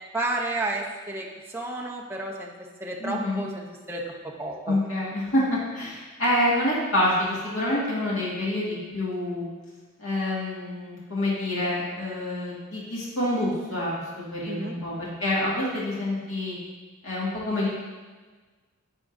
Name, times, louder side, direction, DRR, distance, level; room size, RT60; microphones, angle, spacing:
voice 1, 0.1-1.3 1.5-2.5 2.8-4.0 4.4-4.8 14.5-14.8, right 2 dB, 10° right, -2 dB, 0.6 m, -31 dB
voice 2, 3.0-3.4 4.7-9.4 10.0-13.9 14.2-16.6 17.0-17.7, left 1 dB, 80° left, -7 dB, 1.9 m, -27 dB
11.0 x 3.8 x 2.6 m, 1.3 s
head